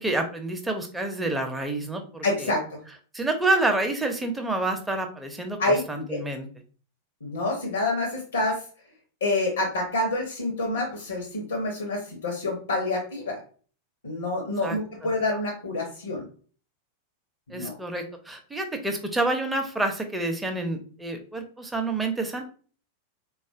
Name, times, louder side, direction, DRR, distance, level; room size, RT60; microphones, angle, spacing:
voice 1, 0.0-2.5 3.1-6.5 14.6-14.8 17.5-22.4, right 2 dB, 5° right, 4 dB, 0.6 m, -28 dB
voice 2, 2.2-2.8 5.6-6.2 7.2-8.6 9.2-13.4 14.0-16.2 17.5-17.7, left 2 dB, 70° left, 1 dB, 0.7 m, -27 dB
3.7 x 2.4 x 2.4 m, 0.41 s
figure-of-eight pair, 90°, 0 cm